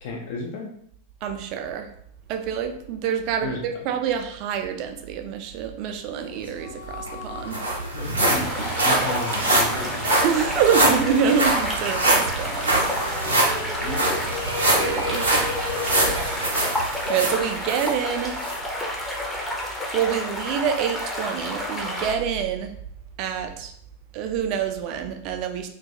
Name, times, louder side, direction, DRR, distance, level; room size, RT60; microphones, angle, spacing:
voice 1, 0.0-0.7 3.4-3.9 7.9-8.5 8.8-10.1 13.3-14.4 16.1-16.7, left 3 dB, 50° left, 0 dB, 0.4 m, -34 dB
voice 2, 1.2-1.9 2.3-7.6 10.2-12.7 14.7-15.3 15.8-16.2 16.8-18.4 19.9-22.7 23.2-23.7 24.1-25.7, right 7 dB, 40° right, 6 dB, 0.3 m, -26 dB
sound 1, 6.2-10.8 11.1-11.2 12.5-16.3, left 4 dB, 80° left, 0.8 m, -36 dB
sound 2, 6.7-6.8 7.1-17.9 18.4-18.6 19.1-19.2, right 2 dB, 75° right, 0.6 m, -24 dB
sound 3, 8.2-22.2, left 1 dB, 5° left, 0.5 m, -30 dB
2.3 x 2.2 x 2.7 m, 0.65 s
figure-of-eight pair, 90°, 0 cm